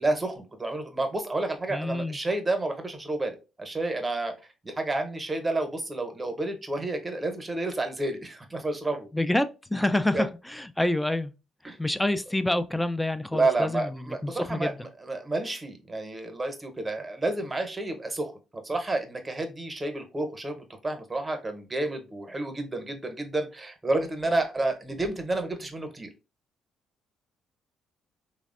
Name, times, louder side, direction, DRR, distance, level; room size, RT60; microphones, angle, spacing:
voice 1, 0.0-4.3 4.6-9.1 10.1-10.2 11.6-11.8 13.3-18.3 18.6-26.1, right 2 dB, 25° right, 0.8 m, -30 dB
voice 2, 1.7-2.2 9.1-11.3 11.6-14.8, left 1 dB, 10° left, 0.3 m, -27 dB
3.2 x 2.0 x 2.4 m
hypercardioid pair, 55°, 0 cm